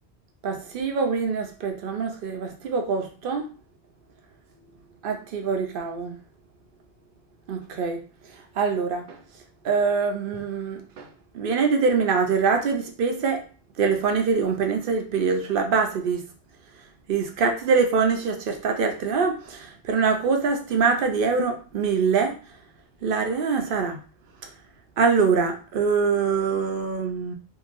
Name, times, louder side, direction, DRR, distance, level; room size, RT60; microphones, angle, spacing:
voice 1, 0.4-3.5 5.0-6.2 7.5-8.0 8.6-9.2 9.6-11.1 11.3-13.4 13.8-16.2 17.1-22.3 23.0-24.0 25.0-27.3, right 5 dB, 60° right, 0.7 m, -24 dB
2.9 x 2.5 x 2.5 m
omnidirectional pair, 1.1 m